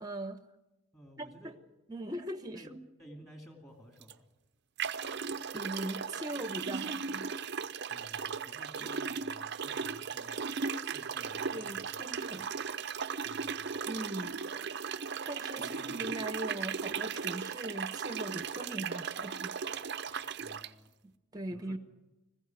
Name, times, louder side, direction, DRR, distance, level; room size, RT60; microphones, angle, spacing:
voice 1, 0.0-0.4 1.2-1.5 1.9-2.8 5.5-7.3 8.8-8.9 11.5-12.5 13.9-14.4 15.3-20.3 21.0-21.8, right 1 dB, 20° right, 0.9 m, -40 dB
voice 2, 0.9-1.6 2.5-4.3 7.9-12.0 12.4-12.5 13.2-13.8 15.6-16.1 20.4-20.9 21.5-21.8, equal, 15° left, 2.7 m, -54 dB
sound 1, 4.0-4.1 4.8-20.7, right 6 dB, 50° right, 0.7 m, -37 dB
20.0 x 15.5 x 9.1 m
head